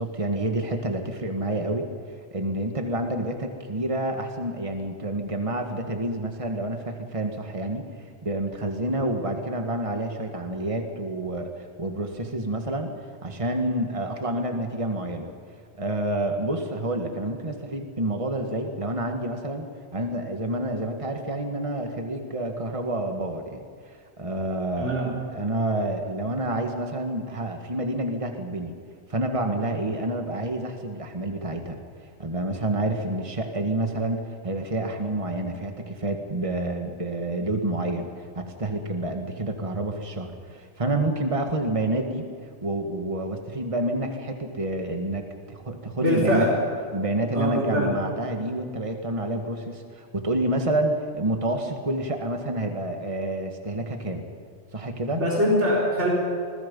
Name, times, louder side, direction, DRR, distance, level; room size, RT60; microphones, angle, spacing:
voice 1, 0.0-1.9 2.3-7.9 8.2-12.9 13.2-15.3 15.8-19.7 19.9-28.7 29.1-31.8 32.2-42.3 42.6-46.5 46.9-54.2 54.7-55.2, right 1 dB, 30° right, 5 dB, 1.8 m, -28 dB
voice 2, 24.8-25.1 45.9-46.5 47.3-47.9 55.1-56.1, equal, 75° right, -4 dB, 4.8 m, -23 dB
27.0 x 21.5 x 5.5 m, 2.1 s
omnidirectional pair, 1.2 m